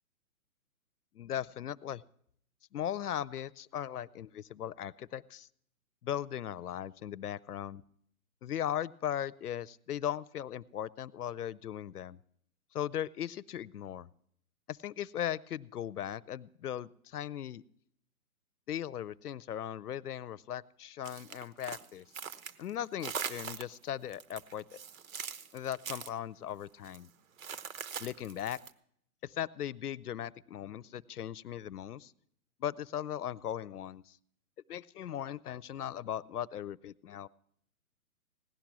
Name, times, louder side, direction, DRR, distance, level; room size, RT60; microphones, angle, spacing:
voice 1, 1.1-2.0 2.7-5.5 6.0-7.8 8.4-12.2 12.7-14.1 14.7-17.6 18.7-22.1 22.6-24.6 25.5-27.1 28.0-28.6 29.2-32.1 32.6-34.2 34.7-37.3, left 10 dB, 80° left, 22 dB, 0.7 m, -38 dB
sound 1, 21.0-22.7 23.0-23.8 24.1-26.1 26.8-27.0 27.4-28.7, right 7 dB, 65° right, 1.1 m, -41 dB
17.0 x 10.5 x 6.1 m, 0.70 s
hypercardioid pair, 150°, 45 cm